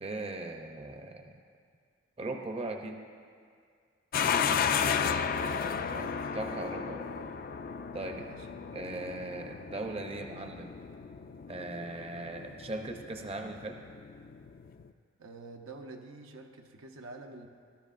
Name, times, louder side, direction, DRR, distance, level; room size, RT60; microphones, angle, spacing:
voice 1, 0.0-1.4 2.2-3.0 5.3-7.1 7.9-8.3 8.7-10.7 11.5-13.8, right 2 dB, 30° right, 4 dB, 0.6 m, -39 dB
sound 1, 4.1-14.9, left 6 dB, 45° left, 0.4 m, -34 dB
voice 2, 4.4-4.8 8.2-8.8 15.2-17.5, right 2 dB, 90° right, 3 dB, 0.8 m, -47 dB
19.0 x 13.0 x 2.5 m, 2.2 s
head